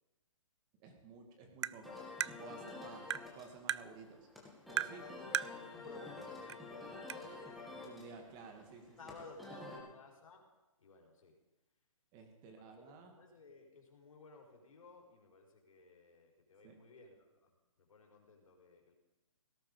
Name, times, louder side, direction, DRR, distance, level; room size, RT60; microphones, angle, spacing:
voice 1, 0.8-4.3 4.7-5.4 7.8-9.0 9.5-9.9 12.1-13.2 16.6-16.8, right 4 dB, 25° right, 4 dB, 2.4 m, -54 dB
Tap, 1.6-1.8 2.2-2.3 3.1-3.3 3.7-3.8 4.8-5.0 5.3-5.5 6.5-6.6 7.1-7.2, right 10 dB, 55° right, 0.4 m, -35 dB
sound 1, 1.8-9.8, left 3 dB, ahead, 2.2 m, -50 dB
voice 2, 4.9-8.0 9.0-10.4 10.8-11.3 12.4-18.9, left 3 dB, 80° left, 1 dB, 4.5 m, -57 dB
17.5 x 12.0 x 5.2 m, 1.1 s
hypercardioid pair, 150°, 17 cm